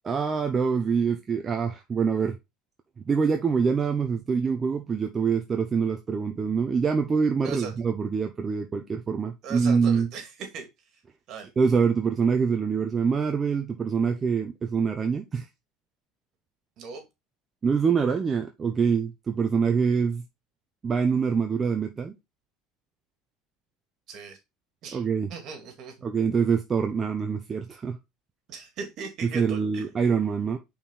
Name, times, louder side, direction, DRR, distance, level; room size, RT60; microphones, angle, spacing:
voice 1, 0.0-2.4 3.1-10.1 11.6-15.5 17.6-20.2 20.8-22.1 24.9-25.3 26.0-28.0 29.2-30.6, right 6 dB, 25° right, 0.9 m, -25 dB
voice 2, 9.4-10.7 11.3-11.5 16.8-17.0 24.1-24.4 24.8-25.0 25.3-25.9 28.5-29.8, right 5 dB, 55° right, 2.6 m, -38 dB
5.5 x 4.5 x 3.9 m
supercardioid pair, 100°, 0 cm